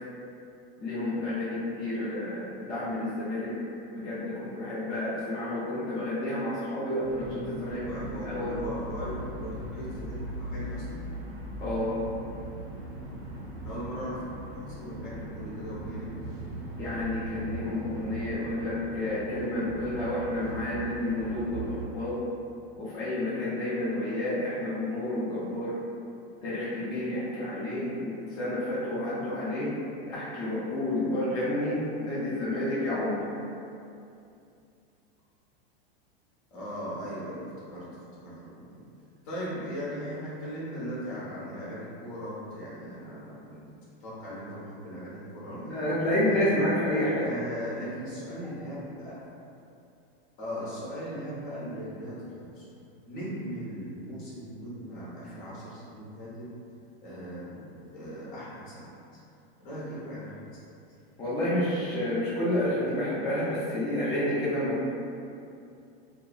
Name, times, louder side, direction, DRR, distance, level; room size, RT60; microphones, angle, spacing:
voice 1, 0.8-3.5 3.9-8.0 8.2-8.5 11.6-12.0 16.8-21.6 21.9-22.2 22.8-25.7 26.4-29.7 30.1-33.2 45.4-47.3 61.2-64.9, left 1 dB, 15° left, -10 dB, 0.3 m, -30 dB
sound 1, 7.0-21.8, right 1 dB, 30° right, 0.8 m, -39 dB
voice 2, 7.5-11.1 13.6-14.3 14.7-16.2 36.5-37.9 38.1-38.8 39.2-43.6 44.0-46.7 47.2-49.1 50.4-52.7 53.1-56.5 57.0-59.0 59.6-60.3 60.6-60.7, equal, 55° left, -8 dB, 1.0 m, -38 dB
2.6 x 2.3 x 2.3 m, 2.6 s
supercardioid pair, 135°, 30 cm